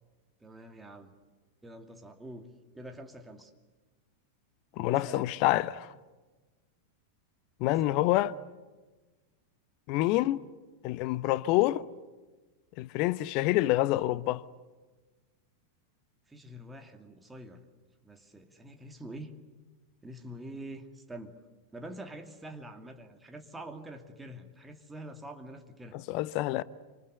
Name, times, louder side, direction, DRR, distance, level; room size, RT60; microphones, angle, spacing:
voice 1, 0.4-1.1 1.6-2.5 2.7-3.5 4.9-5.3 7.7-8.1 16.3-17.6 18.0-19.4 20.0-21.4 21.7-26.0, right 1 dB, 10° right, 2.6 m, -46 dB
voice 2, 4.8-5.9 7.6-8.3 9.9-10.4 10.8-11.9 12.8-14.4 26.1-26.6, left 16 dB, 45° left, 0.8 m, -27 dB
27.5 x 26.5 x 8.0 m
figure-of-eight pair, 90°, 0 cm